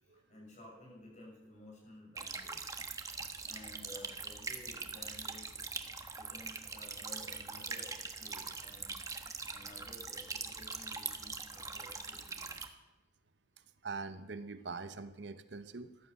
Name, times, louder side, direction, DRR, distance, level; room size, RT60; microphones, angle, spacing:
voice 1, 0.0-2.7 3.1-5.5 6.2-9.0 9.5-12.6, left 1 dB, 40° left, -2 dB, 6.9 m, -54 dB
sound 1, 2.2-12.7, right 4 dB, 20° right, 1.2 m, -42 dB
voice 2, 13.8-16.1, right 4 dB, 65° right, 11 dB, 0.9 m, -44 dB
14.5 x 12.0 x 6.9 m, 1.1 s
head